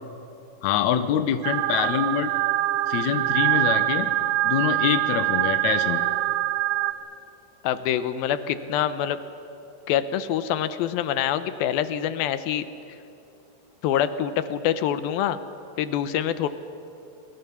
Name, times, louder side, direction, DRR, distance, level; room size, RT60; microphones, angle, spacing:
voice 1, 0.6-2.3 2.9-4.1 4.4-6.1, left 9 dB, 65° left, 9 dB, 2.2 m, -25 dB
sound 1, 1.4-6.9, right 16 dB, 80° right, 2.3 m, -24 dB
voice 2, 7.6-9.2 9.9-12.7 13.8-15.4 15.8-16.5, left 10 dB, 90° left, 11 dB, 2.7 m, -25 dB
28.0 x 21.5 x 7.0 m, 2.7 s
omnidirectional pair, 4.1 m